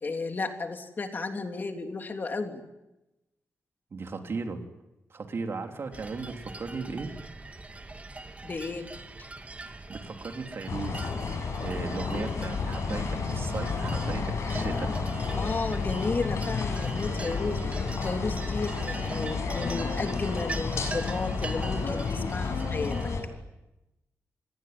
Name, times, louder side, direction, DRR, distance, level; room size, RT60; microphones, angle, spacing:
voice 1, 0.0-2.6 8.4-8.9 14.5-23.1, left 3 dB, 40° left, 5 dB, 3.2 m, -33 dB
voice 2, 3.9-4.6 5.1-7.1 9.9-11.1 11.6-14.9, right 4 dB, 50° right, 4 dB, 3.2 m, -36 dB
sound 1, 5.9-23.2, right 2 dB, 25° right, 2.3 m, -42 dB
sound 2, 10.7-23.2, left 4 dB, 70° left, 6.4 m, -31 dB
26.5 x 21.0 x 9.6 m, 0.97 s
wide cardioid pair, 130°, 5 cm